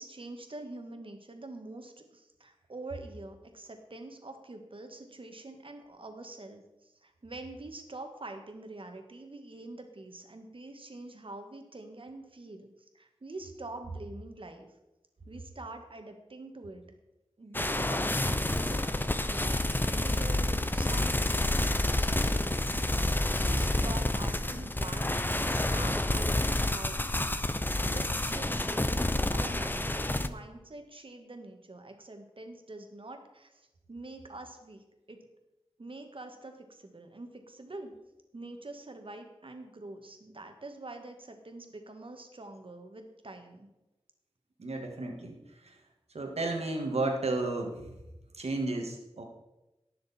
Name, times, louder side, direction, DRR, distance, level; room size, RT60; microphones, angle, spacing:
voice 1, 0.0-12.7 12.9-14.7 15.2-16.8 17.4-27.0 27.4-35.3 35.8-37.9 38.3-43.7, right 2 dB, 55° right, 5 dB, 1.7 m, -45 dB
sound 1, 17.5-30.3, left 1 dB, 20° left, 0.7 m, -29 dB
voice 2, 44.6-45.3 46.1-47.8 48.4-49.2, right 2 dB, 90° right, 2 dB, 2.0 m, -32 dB
18.5 x 6.5 x 4.3 m, 0.98 s
wide cardioid pair, 60°, 10 cm